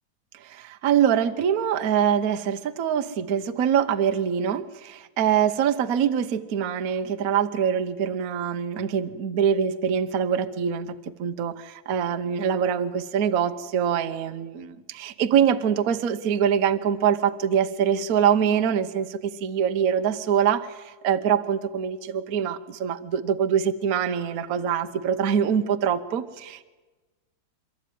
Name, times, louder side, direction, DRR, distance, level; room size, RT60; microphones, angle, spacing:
voice 1, 0.3-26.6, right 8 dB, 55° right, 10 dB, 1.2 m, -24 dB
27.0 x 13.0 x 9.2 m, 1.2 s
omnidirectional pair, 2.1 m